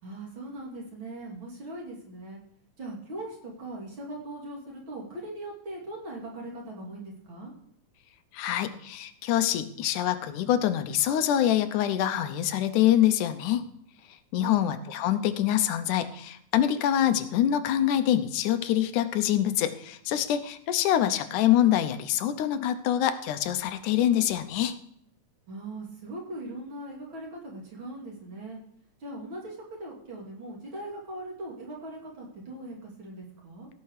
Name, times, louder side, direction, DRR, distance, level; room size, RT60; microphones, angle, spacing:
voice 1, 0.0-2.4 2.8-7.5 14.4-14.7 25.5-28.6 29.0-33.7, right 1 dB, 40° right, -3 dB, 3.2 m, -40 dB
voice 2, 8.3-13.6 14.3-24.8, left 11 dB, 85° left, 10 dB, 2.3 m, -25 dB
16.0 x 5.7 x 6.5 m, 0.71 s
omnidirectional pair, 3.5 m